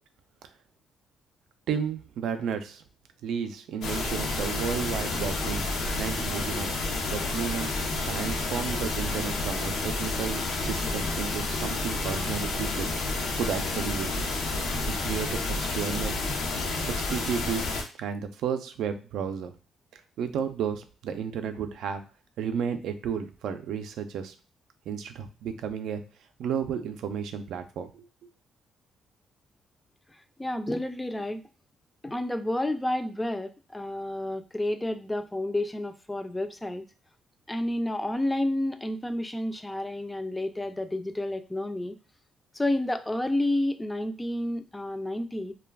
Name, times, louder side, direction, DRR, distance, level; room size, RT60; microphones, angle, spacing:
voice 1, 1.7-2.8 3.2-5.6 6.0-6.7 7.1-7.7 8.0-12.9 13.4-14.2 14.8-16.2 16.9-17.6 18.0-19.5 19.9-22.0 22.4-24.3 24.9-26.0 26.4-28.0, right 7 dB, 80° right, 8 dB, 0.4 m, -32 dB
sound 1, 3.8-17.8, left 2 dB, 85° left, 0.6 m, -30 dB
voice 2, 30.4-31.4 32.0-36.8 37.5-42.0 42.5-45.5, left 1 dB, 10° left, 9 dB, 0.3 m, -30 dB
2.2 x 2.2 x 3.3 m, 0.35 s
cardioid pair, 90°, 0 cm